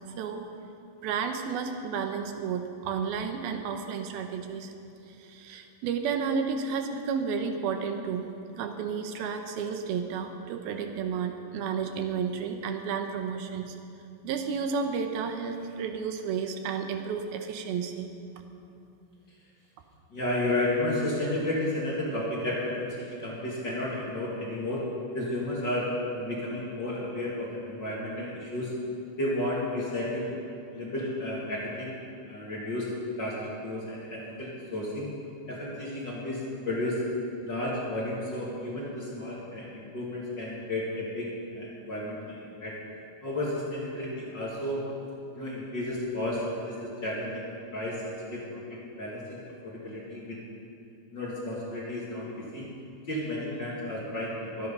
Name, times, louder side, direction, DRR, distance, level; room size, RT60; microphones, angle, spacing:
voice 1, 1.0-4.7 5.2-8.3 8.6-13.8 14.2-18.1, right 6 dB, 80° right, 5 dB, 2.8 m, -32 dB
voice 2, 20.1-24.9 25.1-28.7 29.2-30.3 30.7-32.0 32.3-32.9 33.2-35.1 35.5-37.0 37.4-41.3 41.5-42.7 43.2-44.8 45.3-50.4 51.1-52.7 53.1-54.7, left 1 dB, 35° left, -5 dB, 2.5 m, -32 dB
23.0 x 9.5 x 5.5 m, 2.5 s
omnidirectional pair, 4.3 m